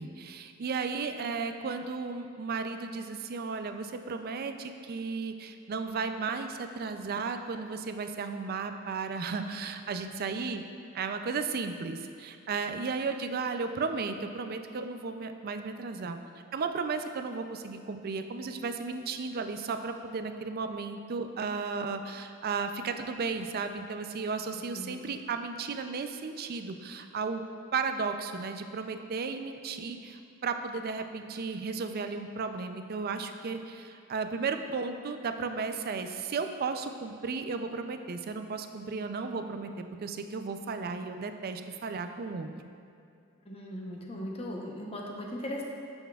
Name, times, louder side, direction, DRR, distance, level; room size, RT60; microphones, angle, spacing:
voice 1, 0.0-10.6 10.9-16.2 16.5-27.4 27.7-42.5, right 4 dB, 45° right, 8 dB, 0.4 m, -34 dB
voice 2, 24.5-25.0 43.5-45.6, left 1 dB, 30° left, -1 dB, 0.8 m, -38 dB
8.9 x 7.1 x 2.4 m, 2.4 s
head